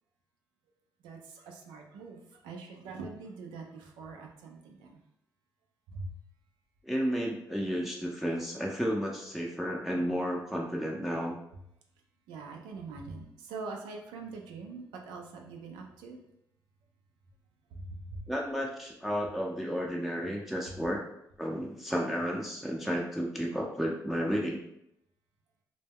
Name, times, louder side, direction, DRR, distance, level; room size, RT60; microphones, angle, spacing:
voice 1, 1.0-5.0 5.9-6.2 12.3-16.2 17.7-18.2, right 3 dB, 90° right, 2 dB, 0.4 m, -43 dB
voice 2, 6.8-11.4 18.3-21.0 21.4-24.6, equal, ahead, -2 dB, 0.5 m, -32 dB
2.1 x 2.1 x 3.4 m, 0.78 s
supercardioid pair, 60°, 8 cm